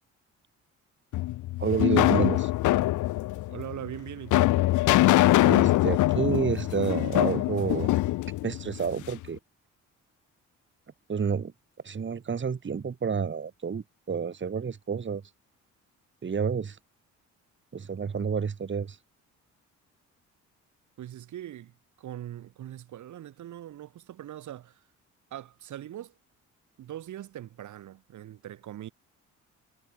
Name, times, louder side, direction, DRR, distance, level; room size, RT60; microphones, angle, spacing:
sound 1, 1.1-9.2, left 17 dB, 85° left, 0.8 m, -23 dB
voice 1, 1.6-2.5 5.4-8.0 8.4-9.4 11.1-11.5 11.8-15.2 16.2-16.8 17.7-19.0, right 6 dB, 40° right, 3.9 m, -29 dB
voice 2, 3.5-4.6 21.0-24.8 25.3-26.1 26.8-28.9, right 12 dB, 75° right, 5.4 m, -41 dB
cardioid pair, 90°, 30 cm